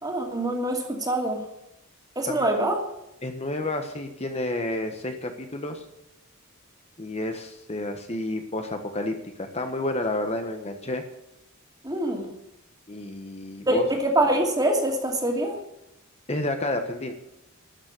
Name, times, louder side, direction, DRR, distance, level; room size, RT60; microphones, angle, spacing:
voice 1, 0.0-1.4 2.2-2.8 11.8-12.3 13.7-15.6, right 1 dB, 20° right, 2 dB, 2.6 m, -24 dB
voice 2, 3.2-5.8 7.0-11.0 12.9-13.9 16.3-17.1, left 2 dB, 30° left, 5 dB, 1.3 m, -30 dB
13.0 x 7.3 x 9.7 m, 0.88 s
head